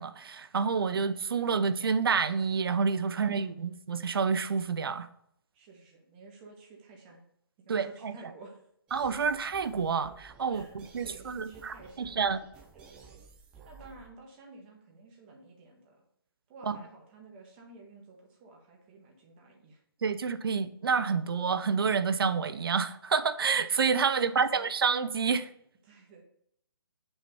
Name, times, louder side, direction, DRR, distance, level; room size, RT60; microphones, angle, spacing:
voice 1, 0.0-5.1 7.7-8.1 8.9-11.5 12.2-12.4 16.7-16.8 20.0-25.5, right 5 dB, 70° right, 12 dB, 0.6 m, -28 dB
voice 2, 3.1-3.7 5.5-7.2 7.6-8.7 10.5-10.8 11.0-12.4 12.7-13.3 13.6-16.0 16.5-19.8 24.0-24.7 25.8-26.2, right 3 dB, 25° right, 0 dB, 1.6 m, -52 dB
sound 1, 8.9-14.1, right 5 dB, 5° right, 0.4 m, -54 dB
5.6 x 4.5 x 5.5 m, 0.72 s
hypercardioid pair, 160°, 13 cm